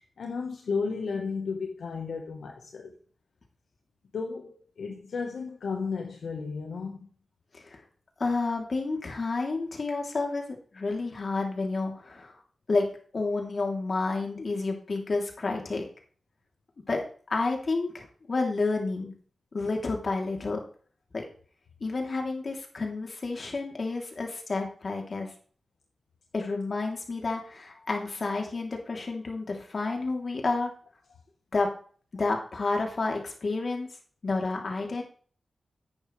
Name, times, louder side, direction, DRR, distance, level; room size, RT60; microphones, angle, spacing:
voice 1, 0.2-2.9 4.1-7.1, left 5 dB, 85° left, 2 dB, 1.3 m, -33 dB
voice 2, 8.2-12.3 12.7-15.9 16.8-17.0 17.3-19.1 19.5-20.6 21.1-21.2 21.8-25.3 26.3-30.7 31.5-31.7 32.1-33.9 34.2-35.0, left 3 dB, 60° left, 1 dB, 3.2 m, -30 dB
11.5 x 8.8 x 3.3 m, 0.43 s
cardioid pair, 50°, 0 cm